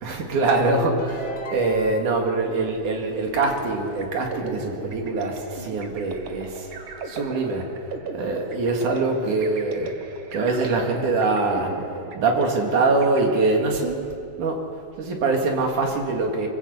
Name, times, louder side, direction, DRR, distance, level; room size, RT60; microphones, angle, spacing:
voice 1, 0.0-6.7 7.1-7.7 8.1-10.0 10.3-11.8 12.1-14.1 14.4-14.7 15.0-16.5, right 3 dB, 70° right, 2 dB, 3.6 m, -23 dB
sound 1, 0.7-2.2, left 2 dB, 60° left, 0.9 m, -34 dB
sound 2, 3.4-13.9, right 4 dB, 50° right, 1.6 m, -38 dB
25.5 x 15.5 x 8.4 m, 2.6 s
omnidirectional pair, 3.8 m